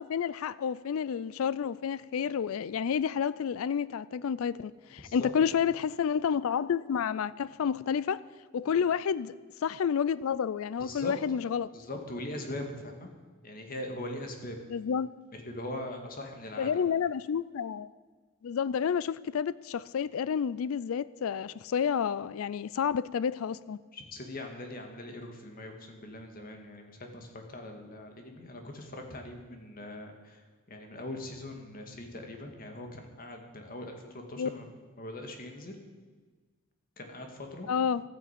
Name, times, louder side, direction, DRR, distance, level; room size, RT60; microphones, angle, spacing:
voice 1, 0.0-8.2 8.5-9.3 9.6-11.7 14.7-15.2 16.6-17.9 18.4-23.8 34.4-34.5 37.7-38.0, left 7 dB, 70° left, 0.4 m, -30 dB
voice 2, 5.0-5.6 8.8-8.9 10.8-11.1 11.7-13.1 13.4-14.6 15.3-16.7 23.9-34.7 35.0-35.8 37.0-37.8, left 1 dB, 40° left, 2.1 m, -41 dB
13.5 x 10.0 x 8.3 m
head